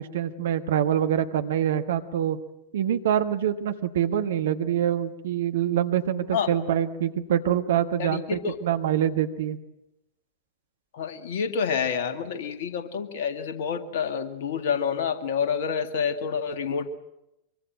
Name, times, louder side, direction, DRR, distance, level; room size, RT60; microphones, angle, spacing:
voice 1, 0.0-2.4 2.7-9.6, right 10 dB, 60° right, 8 dB, 1.5 m, -25 dB
voice 2, 8.0-8.6 10.9-16.9, left 6 dB, 55° left, 9 dB, 2.0 m, -28 dB
24.0 x 24.0 x 7.8 m, 0.91 s
figure-of-eight pair, 90°, 0 cm